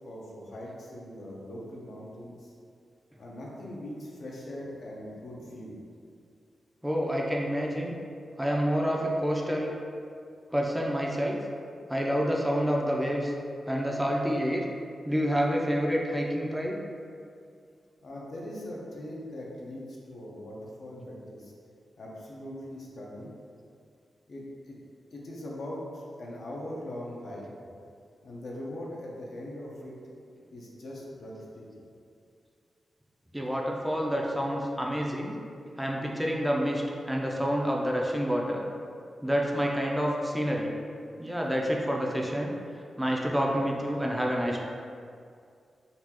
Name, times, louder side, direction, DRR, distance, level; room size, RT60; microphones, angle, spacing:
voice 1, 0.0-2.5 3.2-5.8 18.0-21.5 21.9-23.3 24.3-24.8 25.1-27.5 28.2-30.0 30.5-31.6 43.5-43.6, left 1 dB, 70° left, -4 dB, 0.7 m, -41 dB
voice 2, 6.8-8.0 8.4-9.7 10.5-11.4 11.9-13.3 13.7-14.6 15.0-16.8 33.3-35.3 35.8-38.6 39.2-40.7 41.2-42.5 43.0-44.6, equal, 5° right, -2 dB, 0.4 m, -28 dB
4.1 x 2.3 x 2.8 m, 2.3 s
wide cardioid pair, 95°, 0 cm